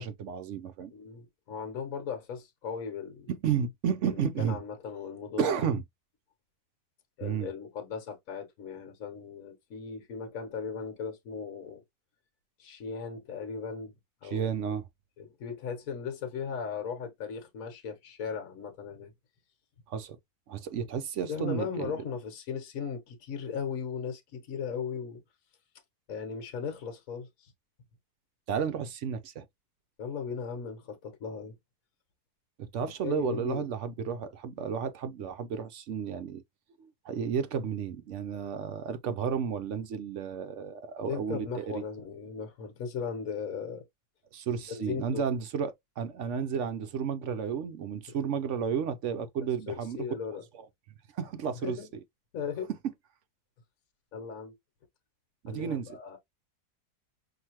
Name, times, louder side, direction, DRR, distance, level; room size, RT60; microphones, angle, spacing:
voice 1, 0.0-0.9 3.3-4.6 5.4-5.8 7.2-7.5 14.2-14.9 19.9-20.2 20.5-22.0 28.5-29.5 32.6-36.4 36.8-41.8 44.3-50.0 51.1-51.8 55.4-56.0, right 7 dB, 65° right, 0.8 m, -32 dB
voice 2, 0.9-3.3 4.1-5.6 7.2-11.8 12.6-13.9 14.2-14.8 15.2-19.1 21.3-25.2 26.1-27.5 30.0-31.6 33.0-33.7 41.1-43.8 44.7-45.2 48.1-48.2 49.7-50.4 51.6-51.9 52.3-52.7 54.1-54.5 55.5-56.2, left 6 dB, 65° left, 1.4 m, -37 dB
5.8 x 2.6 x 2.9 m
omnidirectional pair, 1.7 m